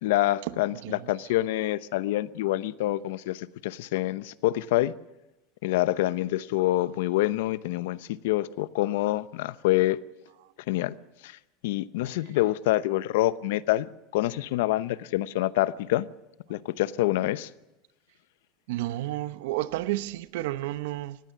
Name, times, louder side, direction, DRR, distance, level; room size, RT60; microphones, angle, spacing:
voice 1, 0.0-4.9 5.6-10.0 10.7-11.0 11.2-11.4 11.6-16.1 16.5-17.5, left 16 dB, 80° left, 0.8 m, -26 dB
voice 2, 18.7-21.2, right 16 dB, 75° right, 0.9 m, -31 dB
19.5 x 15.0 x 9.6 m
cardioid pair, 175°, 0 cm